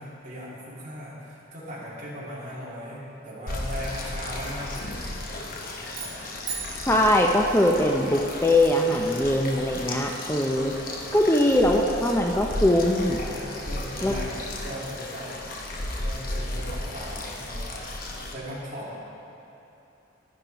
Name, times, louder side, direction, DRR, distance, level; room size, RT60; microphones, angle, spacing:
voice 1, 0.0-5.4 5.8-6.0 6.8-7.0 13.2-14.3 14.6-15.4 16.0-17.7 18.3-18.9, equal, 40° right, -8 dB, 2.6 m, -38 dB
sound 1, 3.5-18.3, left 1 dB, 45° left, 0.9 m, -34 dB
sound 2, 5.9-8.2, right 5 dB, 55° right, 1.9 m, -39 dB
voice 2, 6.9-10.7 11.1-13.2 14.0-14.1, left 1 dB, 10° left, 1 dB, 0.5 m, -21 dB
10.5 x 10.0 x 4.0 m, 2.9 s
head